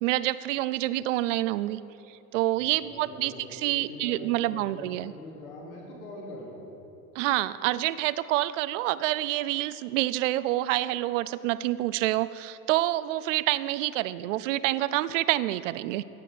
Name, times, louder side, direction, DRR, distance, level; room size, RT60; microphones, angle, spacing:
voice 1, 0.0-1.8 2.3-5.1 7.2-16.0, right 16 dB, 55° right, 16 dB, 0.5 m, -27 dB
voice 2, 2.5-6.6, left 2 dB, 70° left, -3 dB, 3.0 m, -43 dB
17.0 x 7.6 x 5.1 m, 3.0 s
hypercardioid pair, 85°, 45 cm